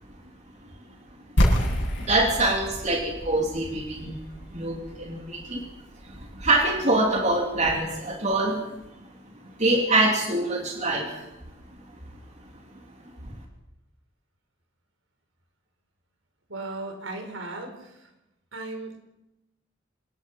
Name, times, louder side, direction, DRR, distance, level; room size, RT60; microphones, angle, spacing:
sound 1, 1.4-7.1, equal, 65° left, 7.5 m, -28 dB
voice 1, 2.1-4.1 4.5-5.7 6.0-8.6 9.6-11.3 13.2-13.4, right 2 dB, 35° right, 0 dB, 3.4 m, -24 dB
voice 2, 16.5-18.1 18.5-19.0, right 2 dB, 80° right, 4 dB, 4.9 m, -36 dB
26.5 x 18.5 x 5.6 m, 0.95 s
head